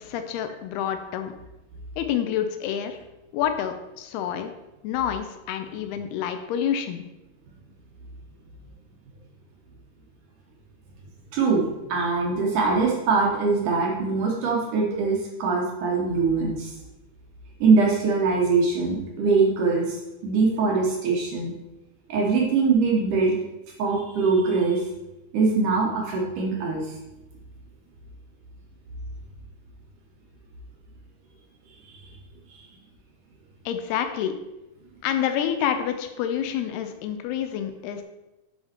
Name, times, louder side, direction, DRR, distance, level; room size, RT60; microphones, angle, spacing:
voice 1, 0.0-1.3 2.0-3.0 3.3-4.5 4.8-7.0 33.7-34.3 35.0-38.0, left 9 dB, 85° left, 7 dB, 2.7 m, -28 dB
voice 2, 11.3-16.7 17.6-19.9 20.2-21.5 22.1-23.4 23.8-24.8 25.3-26.8, right 4 dB, 65° right, -1 dB, 2.4 m, -22 dB
8.6 x 5.7 x 4.4 m, 0.99 s
omnidirectional pair, 4.5 m